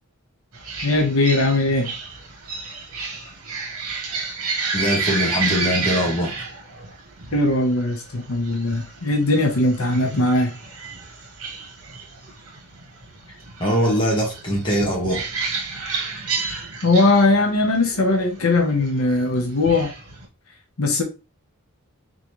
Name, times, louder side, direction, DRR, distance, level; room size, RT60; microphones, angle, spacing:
sound 1, 0.5-20.3, right 4 dB, 75° right, 1.3 m, -31 dB
voice 1, 0.8-1.9 7.3-10.5 16.8-19.9 20.8-21.0, left 2 dB, 70° left, 0.9 m, -19 dB
voice 2, 4.7-6.4 13.6-15.2, equal, 20° left, 1.4 m, -22 dB
4.0 x 3.6 x 3.1 m
head